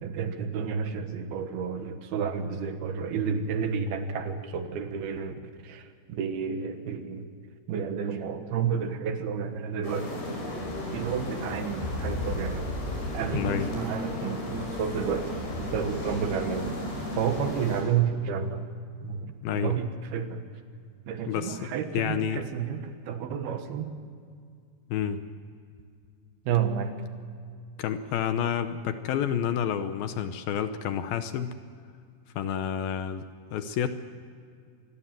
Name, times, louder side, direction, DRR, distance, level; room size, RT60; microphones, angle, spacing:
voice 1, 0.0-5.3 5.6-7.3 7.7-10.2 10.9-12.7 13.1-16.7 17.2-18.7 19.0-20.4 21.1-24.0 26.5-27.0, right 7 dB, 70° right, 7 dB, 3.2 m, -31 dB
sound 1, 9.8-17.8, left 1 dB, 90° left, 8.4 m, -34 dB
voice 2, 13.3-13.7 19.4-19.7 21.3-22.4 24.9-25.2 27.8-31.5 32.4-33.2 33.5-33.9, left 9 dB, 75° left, 9 dB, 2.5 m, -29 dB
26.5 x 21.0 x 7.6 m, 2.2 s
omnidirectional pair, 4.8 m